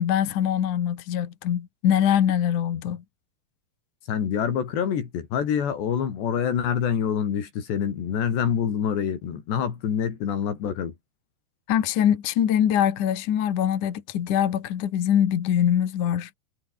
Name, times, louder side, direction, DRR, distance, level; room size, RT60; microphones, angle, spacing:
voice 1, 0.0-3.0 11.7-16.3, left 10 dB, 55° left, 2.8 m, -23 dB
voice 2, 4.1-10.9, left 8 dB, 70° left, 5.6 m, -26 dB
omnidirectional pair, 5.2 m